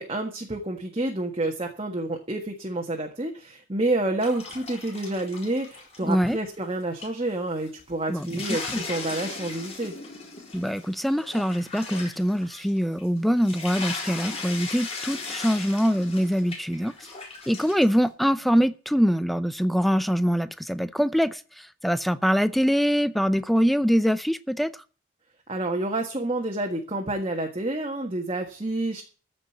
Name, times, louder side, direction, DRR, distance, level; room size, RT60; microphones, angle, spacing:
voice 1, 0.0-9.9 25.5-29.0, right 2 dB, 30° right, 1.6 m, -29 dB
sound 1, 4.2-6.7 7.0-7.1 7.7-7.8 8.0-18.0, left 4 dB, 30° left, 4.2 m, -37 dB
voice 2, 6.0-6.4 8.1-8.8 10.5-16.9 17.5-24.7, equal, ahead, 0.5 m, -24 dB
14.5 x 5.3 x 9.2 m
head